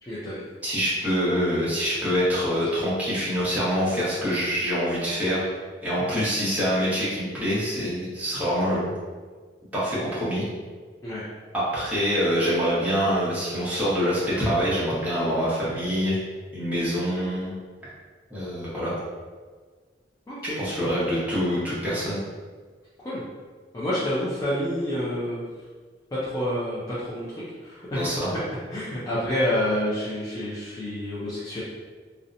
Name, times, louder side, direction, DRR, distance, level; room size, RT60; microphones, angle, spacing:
voice 1, 0.0-0.4 11.0-11.2 20.3-20.6 23.0-23.2 23.7-25.4 26.2-28.2 28.7-31.6, left 1 dB, 20° left, -9 dB, 0.4 m, -28 dB
voice 2, 0.6-5.5 5.8-8.9 9.7-10.5 11.5-16.1 16.5-17.5 18.3-18.9 20.6-22.2 28.0-28.3, equal, 10° right, -10 dB, 0.8 m, -25 dB
2.7 x 2.0 x 2.5 m, 1.5 s
head